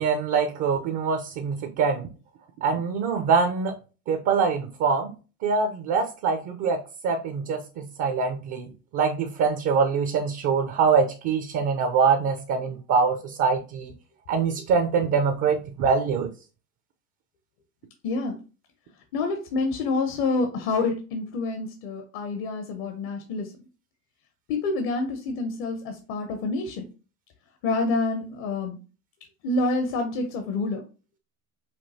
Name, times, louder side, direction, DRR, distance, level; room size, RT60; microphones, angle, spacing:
voice 1, 0.0-2.1 2.6-3.7 4.1-5.1 5.4-6.8 7.0-13.9 14.3-16.3, right 5 dB, 40° right, 6 dB, 0.7 m, -24 dB
voice 2, 18.0-18.4 19.1-23.5 24.5-26.9 27.6-28.8 29.4-30.8, left 3 dB, 50° left, 5 dB, 0.9 m, -27 dB
5.2 x 2.6 x 2.8 m, 0.34 s
hypercardioid pair, 90°, 43 cm